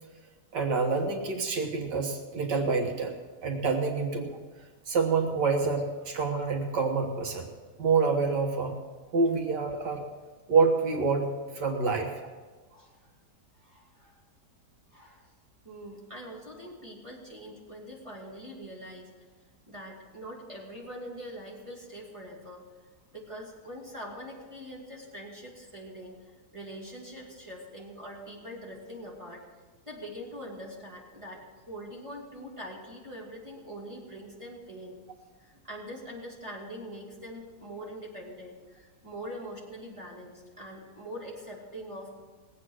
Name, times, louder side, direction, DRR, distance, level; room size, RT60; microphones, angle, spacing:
voice 1, 0.5-3.1 3.4-4.4 4.9-7.5 7.8-8.8 9.1-10.0 10.5-11.3 11.5-12.1, right 4 dB, 85° right, 2 dB, 2.1 m, -27 dB
voice 2, 12.7-13.1 13.5-14.2 14.9-15.3 15.6-19.1 19.7-22.6 23.1-29.4 29.9-35.0 35.4-42.1, equal, 20° right, -3 dB, 2.5 m, -43 dB
19.0 x 8.6 x 6.2 m, 1.4 s
omnidirectional pair, 1.8 m